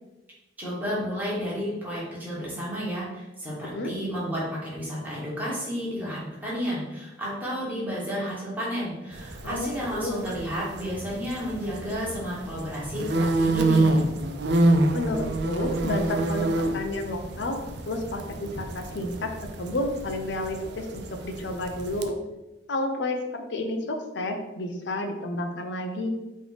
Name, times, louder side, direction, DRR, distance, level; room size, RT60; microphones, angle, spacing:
voice 1, 0.6-14.0, equal, 10° right, -7 dB, 1.3 m, -32 dB
sound 1, 9.1-22.0, right 2 dB, 65° right, 0.4 m, -28 dB
voice 2, 9.4-10.2 14.9-17.6 17.9-19.3 19.6-22.2 22.7-26.1, left 1 dB, 70° left, 4 dB, 0.6 m, -31 dB
3.4 x 3.1 x 3.9 m, 1.0 s
head